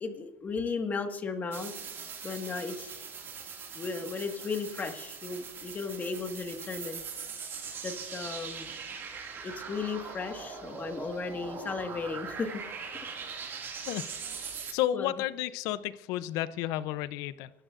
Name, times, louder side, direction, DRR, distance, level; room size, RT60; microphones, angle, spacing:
voice 1, 0.0-1.7 2.2-3.1 3.7-7.0 7.8-8.7 9.4-12.6 14.9-15.1, left 4 dB, 30° left, 6 dB, 1.6 m, -35 dB
sound 1, 1.5-14.7, right 6 dB, 35° right, 2.2 m, -41 dB
voice 2, 14.7-17.5, left 13 dB, 70° left, 16 dB, 0.6 m, -32 dB
27.0 x 13.0 x 2.5 m, 0.99 s
supercardioid pair, 110°, 6 cm